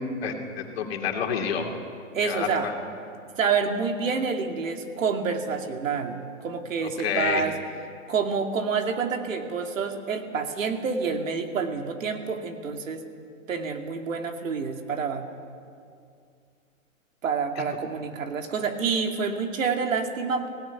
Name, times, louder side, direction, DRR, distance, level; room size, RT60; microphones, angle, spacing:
voice 1, 0.0-1.7 2.2-2.7 7.0-7.4 17.6-17.7, left 7 dB, 50° left, 3 dB, 2.6 m, -29 dB
voice 2, 2.1-2.7 3.4-7.5 8.1-13.0 13.5-15.3 17.2-20.5, right 5 dB, 75° right, 4 dB, 2.5 m, -28 dB
17.5 x 17.0 x 9.4 m, 2.4 s
hypercardioid pair, 160°, 40 cm